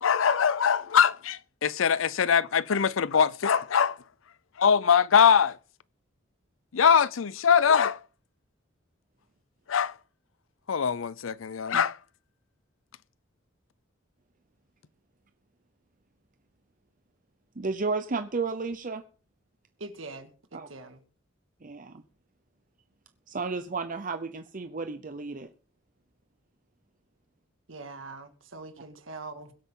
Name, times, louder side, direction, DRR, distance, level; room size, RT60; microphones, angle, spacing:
voice 1, 0.0-4.0 4.6-5.6 6.7-8.0 9.7-9.9 10.7-12.0, left 7 dB, 85° left, 0.6 m, -22 dB
voice 2, 17.6-19.0 20.5-20.7 21.6-22.0 23.3-25.5, right 4 dB, 45° right, 0.7 m, -32 dB
voice 3, 19.8-21.0 27.7-29.5, right 3 dB, 80° right, 2.0 m, -43 dB
22.0 x 8.3 x 3.8 m
head